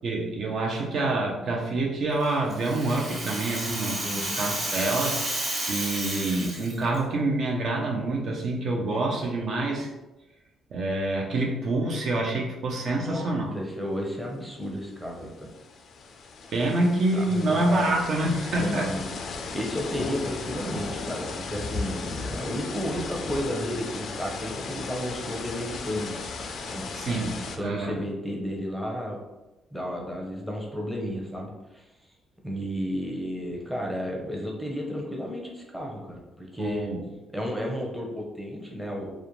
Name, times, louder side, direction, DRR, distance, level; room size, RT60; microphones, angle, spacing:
voice 1, 0.0-5.2 5.7-9.9 10.7-13.6 16.5-18.9 26.7-28.0 36.6-37.0, right 2 dB, 60° right, -1 dB, 0.5 m, -27 dB
Rattle (instrument), 2.2-7.0, right 1 dB, 45° right, 1.2 m, -31 dB
voice 2, 4.0-4.6 12.9-15.5 17.1-18.0 18.6-19.1 19.5-26.2 26.7-26.8 27.6-29.2 29.7-31.9 32.4-36.9 37.3-39.1, equal, 5° right, -1 dB, 0.6 m, -33 dB
sound 1, 14.6-14.7 15.0-27.6, left 4 dB, 65° left, 0.3 m, -36 dB
2.4 x 2.1 x 2.9 m, 1.0 s
cardioid pair, 90°, 0 cm